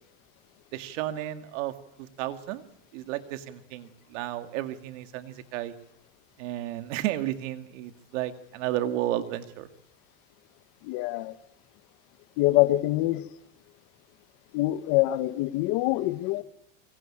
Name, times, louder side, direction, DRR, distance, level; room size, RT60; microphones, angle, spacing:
voice 1, 0.7-1.7 2.0-2.6 2.9-5.7 6.4-9.7, right 13 dB, 80° right, 9 dB, 2.2 m, -32 dB
voice 2, 10.8-11.4 12.4-13.2 14.5-16.4, left 17 dB, 60° left, 12 dB, 1.2 m, -25 dB
25.0 x 24.0 x 8.9 m, 0.78 s
supercardioid pair, 125°, 37 cm